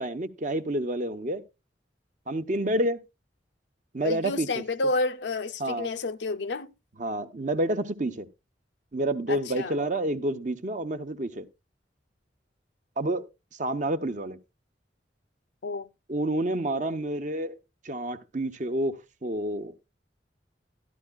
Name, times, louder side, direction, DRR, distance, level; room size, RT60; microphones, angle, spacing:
voice 1, 0.0-1.4 2.3-3.0 3.9-4.6 5.6-5.9 7.0-8.3 8.9-11.5 13.0-14.4 16.1-17.6 17.8-19.7, right 1 dB, 45° right, 0.8 m, -29 dB
voice 2, 4.0-6.7 9.3-9.8 15.6-15.9, left 2 dB, 80° left, 0.6 m, -30 dB
12.5 x 12.0 x 2.3 m
head